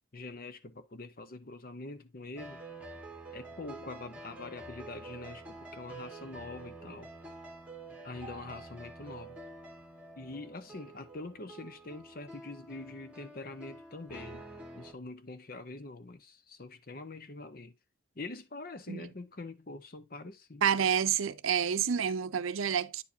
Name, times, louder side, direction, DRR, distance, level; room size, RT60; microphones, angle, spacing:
voice 1, 0.1-2.6 3.3-7.1 8.0-9.4 10.2-14.4 14.7-17.7 18.2-20.6, left 3 dB, 45° left, 0.8 m, -44 dB
sound 1, 2.4-14.9, right 2 dB, 5° right, 1.6 m, -48 dB
voice 2, 20.6-23.0, right 8 dB, 85° right, 0.6 m, -29 dB
9.7 x 4.7 x 2.8 m
head